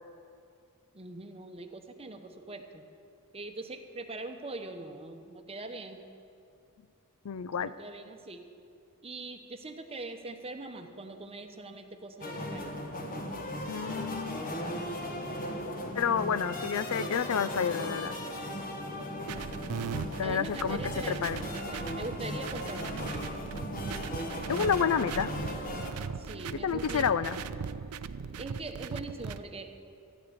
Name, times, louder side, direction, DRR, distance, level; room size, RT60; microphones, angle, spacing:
voice 1, 0.9-2.9 3.3-6.0 7.6-8.5 9.0-12.8 20.2-23.0 26.1-27.1 28.4-29.7, right 2 dB, 25° right, 6 dB, 0.9 m, -42 dB
voice 2, 7.2-7.7 13.7-14.4 15.9-18.2 20.2-21.4 24.5-25.3 26.6-27.4, left 7 dB, 70° left, 15 dB, 0.4 m, -29 dB
sound 1, 12.2-25.9, left 1 dB, 40° left, 1.3 m, -37 dB
sound 2, 15.2-19.3, left 1 dB, 10° left, 2.6 m, -50 dB
sound 3, 19.3-29.4, right 6 dB, 80° right, 0.5 m, -39 dB
14.0 x 6.7 x 9.5 m, 2.4 s
head